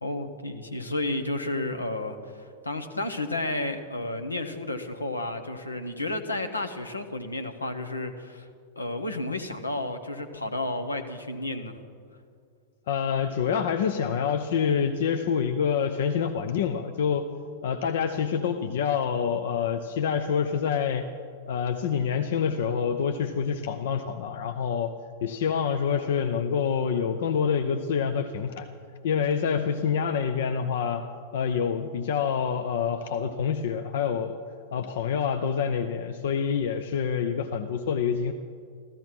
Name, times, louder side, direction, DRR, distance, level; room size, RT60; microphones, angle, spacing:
voice 1, 0.0-8.5 8.8-11.8, left 2 dB, 80° left, 8 dB, 1.1 m, -32 dB
voice 2, 12.9-17.3 17.6-21.1 21.5-24.9 25.2-28.7 29.0-31.0 31.3-34.4 34.7-38.3, left 7 dB, 60° left, 7 dB, 0.7 m, -27 dB
15.0 x 14.0 x 5.9 m, 2.2 s
figure-of-eight pair, 90°, 0 cm